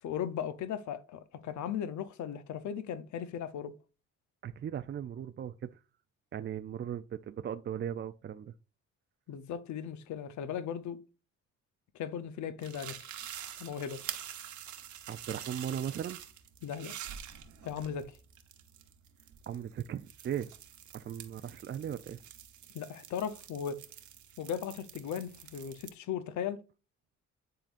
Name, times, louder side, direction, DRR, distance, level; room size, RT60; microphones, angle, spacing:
voice 1, 0.0-3.8 9.3-11.0 11.9-13.1 13.6-14.0 16.6-16.9 17.6-18.2 22.7-23.9 24.4-26.6, left 8 dB, 70° left, 0.8 m, -37 dB
voice 2, 4.4-5.8 6.3-8.5 15.1-16.2 19.5-20.5 20.9-22.2, right 9 dB, 40° right, 0.4 m, -38 dB
sound 1, 12.6-25.9, right 10 dB, 70° right, 1.1 m, -47 dB
10.0 x 3.8 x 2.5 m
cardioid pair, 90°, 30 cm